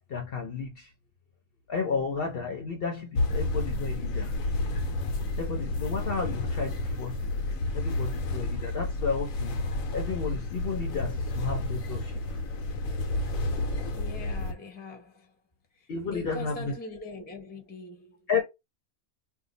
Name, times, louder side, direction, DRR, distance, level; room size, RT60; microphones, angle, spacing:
voice 1, 0.1-0.9 1.7-4.4 5.4-7.2 7.7-9.6 9.9-12.2 13.5-13.7 15.9-16.7 18.3-18.4, left 5 dB, 55° left, 0.7 m, -32 dB
sound 1, 3.2-14.5, left 2 dB, 90° left, 1.1 m, -30 dB
voice 2, 13.9-15.4 15.7-18.2, left 3 dB, 10° left, 0.5 m, -42 dB
2.6 x 2.3 x 3.8 m
omnidirectional pair, 1.4 m